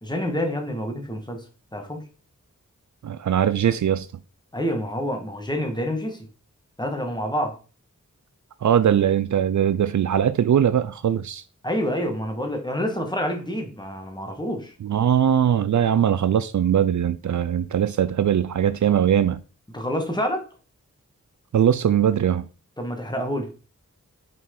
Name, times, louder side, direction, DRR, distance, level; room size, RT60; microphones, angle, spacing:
voice 1, 0.0-1.4 1.7-2.0 4.5-6.3 6.8-7.6 11.6-14.7 19.7-20.5 22.8-23.5, equal, 15° left, 1.6 m, -27 dB
voice 2, 3.0-4.1 8.6-11.4 14.8-19.4 21.5-22.5, right 9 dB, 70° right, 0.4 m, -21 dB
5.9 x 4.5 x 3.8 m
wide cardioid pair, 75°, 31 cm